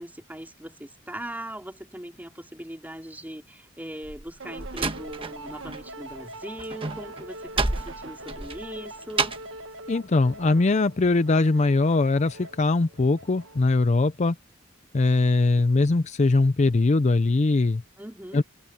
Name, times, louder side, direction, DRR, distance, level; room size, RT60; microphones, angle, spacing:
voice 1, 0.0-9.4 18.0-18.4, right 1 dB, 10° right, 3.0 m, -40 dB
Slam, 4.0-5.8 6.1-9.6, right 3 dB, 30° right, 1.3 m, -30 dB
sound 1, 4.4-13.8, right 1 dB, 80° right, 1.5 m, -43 dB
voice 2, 9.9-14.4 14.9-17.8 18.3-18.4, left 3 dB, 35° left, 0.5 m, -21 dB
head